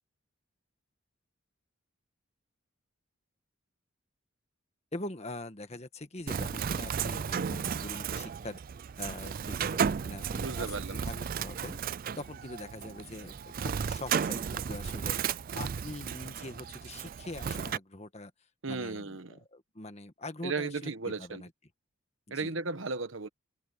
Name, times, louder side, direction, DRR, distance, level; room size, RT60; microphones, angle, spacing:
voice 1, 4.9-8.6 9.0-11.8 12.2-15.2 15.5-18.3 18.7-21.5 22.3-22.5, left 2 dB, 30° left, 1.6 m, -43 dB
Bird, 6.3-17.8, right 7 dB, 45° right, 0.3 m, -34 dB
voice 2, 10.4-11.0 18.6-19.4 20.4-21.4 22.3-23.3, right 4 dB, 65° right, 1.2 m, -35 dB
open air
head